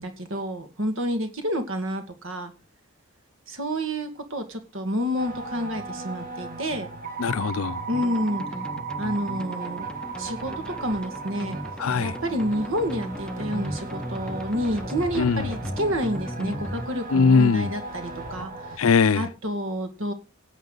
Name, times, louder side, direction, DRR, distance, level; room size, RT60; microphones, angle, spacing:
voice 1, 0.0-2.5 3.5-6.9 7.9-8.4 9.0-9.9 10.2-10.5 10.8-11.6 12.0-18.5 19.2-20.1, equal, 65° right, 2.1 m, -29 dB
sound 1, 5.2-18.8, right 4 dB, 45° right, 2.3 m, -36 dB
voice 2, 7.2-7.8 11.8-12.1 15.1-15.5 17.1-17.7 18.8-19.3, left 5 dB, 80° left, 0.5 m, -20 dB
sound 2, 7.9-16.9, equal, 5° left, 0.7 m, -37 dB
17.0 x 8.4 x 4.0 m
head